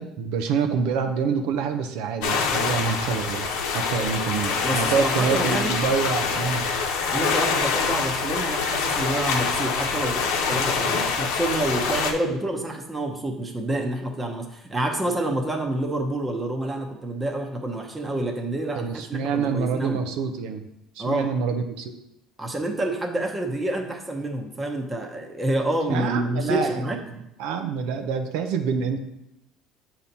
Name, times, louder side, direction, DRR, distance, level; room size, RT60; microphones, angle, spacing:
voice 1, 0.0-6.7 18.8-20.7 21.0-22.0 25.9-29.0, right 6 dB, 80° right, 6 dB, 0.5 m, -27 dB
sound 1, 2.2-12.1, left 5 dB, 85° left, 0.8 m, -25 dB
voice 2, 4.6-5.7 7.1-20.0 21.0-21.3 22.4-27.0, right 1 dB, 15° right, 3 dB, 0.9 m, -28 dB
7.0 x 2.9 x 5.3 m, 0.85 s
cardioid pair, 125°, 0 cm